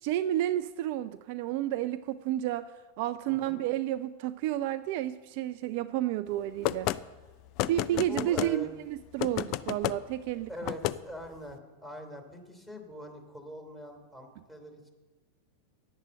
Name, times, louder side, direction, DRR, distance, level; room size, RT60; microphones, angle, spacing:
voice 1, 0.0-2.7 3.0-6.9 7.7-10.7, right 13 dB, 45° right, 12 dB, 0.4 m, -31 dB
voice 2, 3.3-3.6 7.9-8.7 10.5-14.9, equal, 5° left, 3 dB, 3.0 m, -43 dB
sound 1, 6.6-7.0 7.6-8.5 9.2-10.0 10.7-11.0, left 15 dB, 40° left, 0.4 m, -30 dB
10.0 x 8.0 x 7.6 m, 1.2 s
figure-of-eight pair, 90°, 0 cm